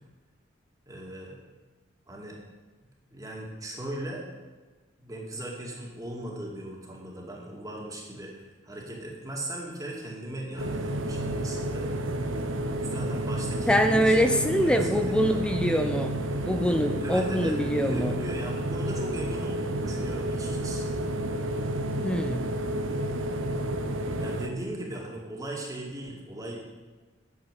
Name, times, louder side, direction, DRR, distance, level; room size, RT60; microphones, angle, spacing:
voice 1, 0.9-1.3 2.1-2.4 3.1-4.3 5.0-11.9 12.7-15.8 17.0-20.9 24.2-26.7, right 1 dB, 15° right, -2 dB, 2.4 m, -38 dB
sound 1, 10.6-24.5, right 1 dB, 80° right, 1.1 m, -30 dB
voice 2, 13.7-16.2 16.4-18.2 22.0-22.5, equal, 5° left, 6 dB, 0.7 m, -24 dB
11.0 x 7.3 x 8.3 m, 1.3 s
head